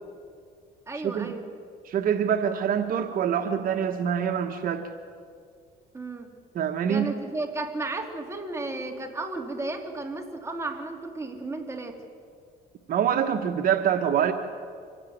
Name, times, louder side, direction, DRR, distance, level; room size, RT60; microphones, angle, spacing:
voice 1, 0.9-1.5 5.9-6.3 6.9-12.0, right 2 dB, 15° right, 3 dB, 3.0 m, -34 dB
voice 2, 1.8-4.9 6.5-7.1 12.9-14.3, right 8 dB, 55° right, 5 dB, 1.3 m, -25 dB
25.0 x 16.5 x 9.5 m, 2.2 s
cardioid pair, 110°, 17 cm